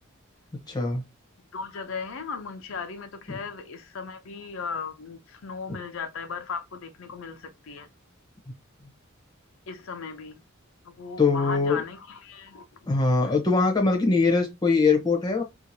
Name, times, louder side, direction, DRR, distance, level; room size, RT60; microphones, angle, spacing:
voice 1, 0.7-1.0 3.3-3.4 11.2-11.8 12.9-15.4, left 4 dB, 20° left, 0.8 m, -22 dB
voice 2, 1.5-7.9 9.7-10.4 10.8-12.7 13.2-13.3, left 5 dB, 80° left, 0.5 m, -37 dB
2.8 x 2.4 x 2.6 m
head